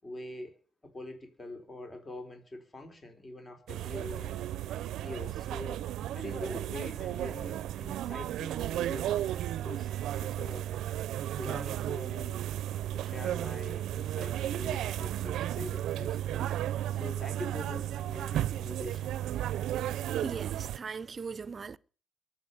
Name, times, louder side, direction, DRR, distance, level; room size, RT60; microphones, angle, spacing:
voice 1, 0.0-0.6 0.8-4.5 5.0-5.8 6.1-10.7 11.4-12.4 12.9-16.5 16.9-19.2, left 1 dB, 25° left, 4.3 m, -44 dB
sound 1, 3.7-20.8, right 12 dB, 80° right, 0.6 m, -34 dB
voice 2, 20.2-21.8, right 5 dB, 40° right, 0.7 m, -39 dB
23.5 x 7.9 x 5.4 m
cardioid pair, 90°, 0 cm